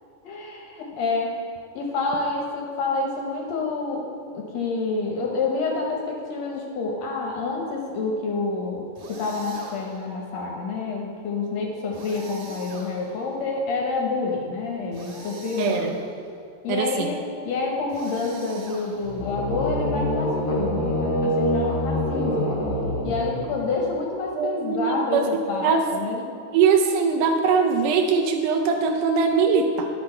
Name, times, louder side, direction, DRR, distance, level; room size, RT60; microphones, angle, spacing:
voice 1, 0.2-1.4 1.7-4.1 4.3-16.0 16.6-22.6 23.0-26.2, left 3 dB, 70° left, -1 dB, 1.9 m, -28 dB
sound 1, 8.9-10.1 11.9-13.4 14.9-16.2 17.9-19.3, right 3 dB, 60° right, 2.0 m, -43 dB
voice 2, 15.6-15.9 16.7-17.1 24.3-25.3 25.6-25.8 26.5-29.9, right 5 dB, 85° right, 2 dB, 2.2 m, -21 dB
sound 2, 19.0-23.7, equal, 50° left, 1.2 m, -25 dB
11.0 x 6.0 x 4.4 m, 2.4 s
omnidirectional pair, 3.6 m